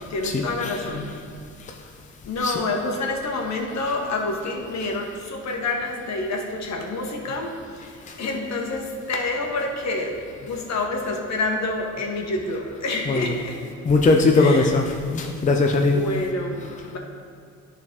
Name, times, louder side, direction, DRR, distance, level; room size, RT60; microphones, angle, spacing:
voice 1, 0.1-1.2 2.2-10.1 10.4-13.6 14.3-14.7 15.8-17.0, left 2 dB, 65° left, 1 dB, 1.3 m, -28 dB
voice 2, 13.9-14.8 15.1-16.0, left 3 dB, 25° left, 3 dB, 0.6 m, -19 dB
10.5 x 4.0 x 4.5 m, 2.3 s
cardioid pair, 90°, 30 cm